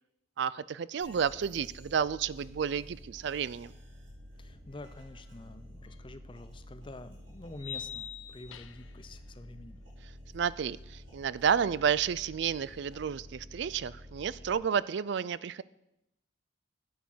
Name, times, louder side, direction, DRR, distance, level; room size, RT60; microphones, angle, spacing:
voice 1, 0.4-3.7 10.3-15.6, right 7 dB, 60° right, 19 dB, 0.4 m, -31 dB
sound 1, 1.0-14.5, equal, 75° right, 5.4 m, -50 dB
voice 2, 4.4-9.8, left 2 dB, 25° left, 11 dB, 0.6 m, -48 dB
sound 2, 5.9-6.0 7.6-9.0, left 9 dB, 85° left, 0.6 m, -42 dB
9.4 x 8.5 x 6.1 m, 0.86 s
head